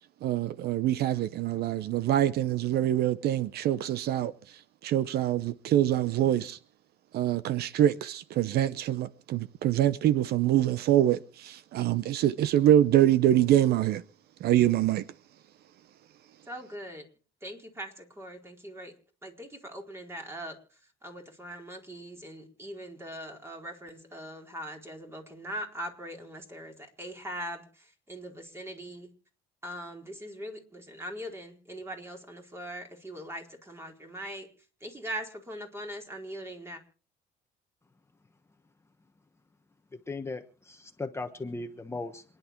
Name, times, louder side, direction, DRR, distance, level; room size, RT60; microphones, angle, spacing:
voice 1, 0.2-4.3 4.8-6.6 7.1-14.0 14.4-15.0, right 12 dB, 70° right, 0.8 m, -25 dB
voice 2, 16.5-17.1 17.4-18.9 19.2-29.1 29.6-34.5 34.8-36.8, right 1 dB, 15° right, 4.3 m, -41 dB
voice 3, 40.1-42.2, left 3 dB, 15° left, 1.2 m, -37 dB
27.0 x 10.5 x 4.5 m
cardioid pair, 110°, 17 cm